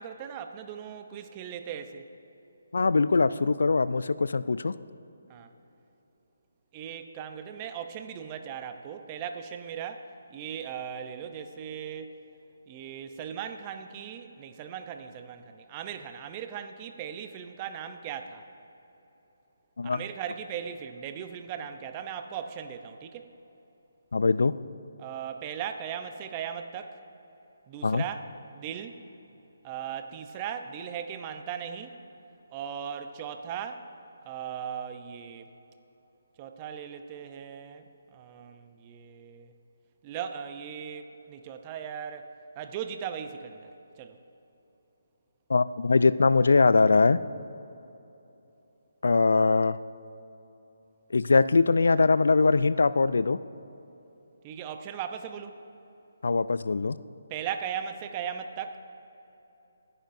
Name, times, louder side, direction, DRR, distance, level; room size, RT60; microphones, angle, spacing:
voice 1, 0.0-2.1 5.3-5.5 6.7-12.2 12.7-18.5 19.8-23.3 25.0-27.0 27.7-29.0 29.6-32.0 32.5-33.9 34.2-35.5 36.4-39.5 40.0-42.3 42.6-44.2 54.4-55.6 57.3-58.8, right 8 dB, 25° right, 8 dB, 0.6 m, -38 dB
voice 2, 2.7-4.7 19.8-20.0 24.1-24.5 27.8-28.0 45.5-47.2 49.0-49.8 51.1-53.4 56.2-57.0, left 4 dB, 75° left, 16 dB, 0.4 m, -22 dB
24.5 x 10.0 x 2.6 m, 3.0 s
figure-of-eight pair, 155°, 0 cm